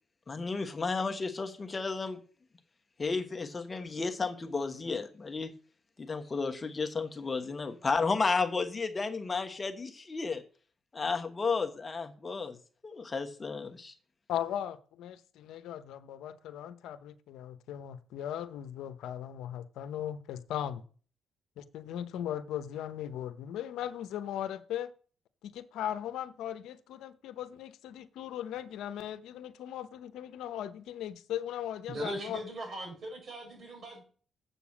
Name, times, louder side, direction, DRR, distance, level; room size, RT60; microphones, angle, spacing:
voice 1, 0.3-2.2 3.0-5.5 6.0-10.4 10.9-12.6 12.8-13.9, left 4 dB, 30° left, 1.2 m, -33 dB
voice 2, 14.3-20.8 21.6-24.9 25.5-32.4, left 10 dB, 85° left, 0.9 m, -38 dB
voice 3, 31.9-34.0, right 1 dB, 55° right, 5.6 m, -39 dB
7.8 x 6.9 x 7.3 m
cardioid pair, 90°, 0 cm